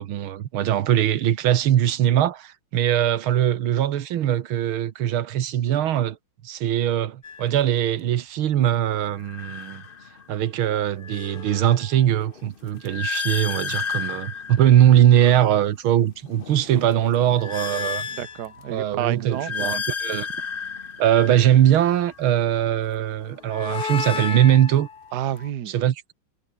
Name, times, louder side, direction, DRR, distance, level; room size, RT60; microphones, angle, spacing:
voice 1, 0.0-6.2 6.4-9.8 10.3-18.1 18.7-20.3 21.0-24.9 25.7-26.1, right 11 dB, 85° right, 2.0 m, -21 dB
sound 1, 7.2-7.5 9.2-10.4 10.8-15.6 16.1-18.8 19.2-22.2 23.2-25.5, left 6 dB, 35° left, 0.9 m, -33 dB
voice 2, 18.1-19.8 25.1-25.7, right 11 dB, 60° right, 1.5 m, -30 dB
omnidirectional pair, 2.2 m